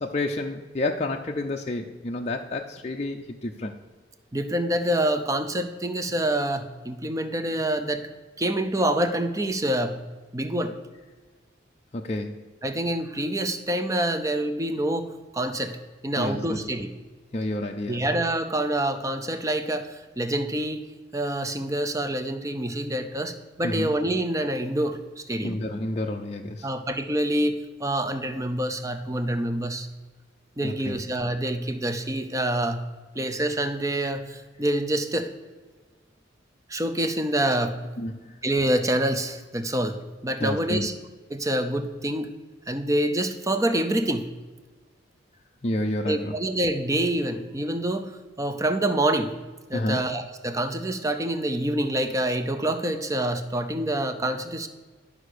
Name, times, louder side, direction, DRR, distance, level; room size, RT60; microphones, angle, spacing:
voice 1, 0.0-3.8 11.9-12.4 16.2-16.6 17.3-18.0 23.6-23.9 25.4-26.7 30.6-31.0 38.0-38.3 40.4-40.9 45.6-46.3 49.7-50.0, left 2 dB, 35° left, 2 dB, 0.5 m, -29 dB
voice 2, 4.3-8.0 8.4-10.0 10.3-10.8 12.6-16.9 17.9-20.8 21.1-25.6 26.6-29.9 30.6-32.8 33.2-35.3 36.7-37.8 38.4-40.9 41.3-42.3 42.7-44.3 46.1-48.1 48.4-49.4 49.7-54.7, right 1 dB, 15° right, 8 dB, 0.6 m, -26 dB
11.5 x 5.1 x 6.5 m, 1.4 s
head